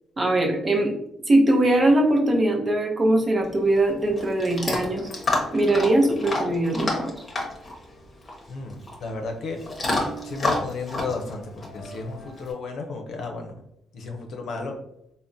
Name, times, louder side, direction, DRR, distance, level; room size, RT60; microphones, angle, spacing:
voice 1, 0.2-0.9 1.3-5.1 5.5-7.1, right 1 dB, 35° right, 1 dB, 0.7 m, -21 dB
Chewing mastication / Dog, 3.4-12.5, left 2 dB, 35° left, 0.8 m, -30 dB
voice 2, 8.5-9.6 10.2-13.5 13.9-14.8, left 3 dB, 70° left, 2 dB, 0.6 m, -33 dB
3.5 x 2.1 x 2.6 m, 0.78 s
cardioid pair, 90°, 0 cm